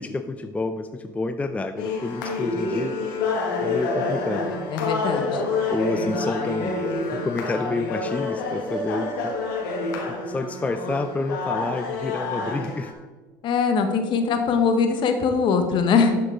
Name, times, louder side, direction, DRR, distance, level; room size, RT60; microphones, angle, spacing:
voice 1, 0.0-2.9 3.6-4.6 5.7-6.8 7.1-9.3 10.2-12.9, left 3 dB, 15° left, 8 dB, 0.4 m, -29 dB
sound 1, 1.8-12.9, left 3 dB, 80° left, 1.3 m, -28 dB
voice 2, 4.7-5.4 13.4-16.1, left 5 dB, 55° left, 6 dB, 1.1 m, -21 dB
11.5 x 4.5 x 3.8 m, 1.3 s
hypercardioid pair, 70°, 10 cm